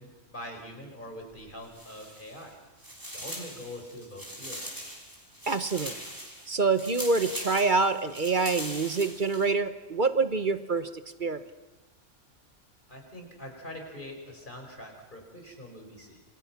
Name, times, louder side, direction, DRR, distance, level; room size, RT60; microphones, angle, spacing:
voice 1, 0.0-2.6 3.1-4.7 12.9-16.2, left 1 dB, 35° left, 3 dB, 5.2 m, -43 dB
sound 1, 1.6-2.5 2.8-9.5, equal, 15° right, 5.0 m, -41 dB
voice 2, 5.5-6.0 6.5-11.4, right 4 dB, 40° right, 11 dB, 1.1 m, -26 dB
27.5 x 26.0 x 5.9 m, 1.1 s
omnidirectional pair, 1.4 m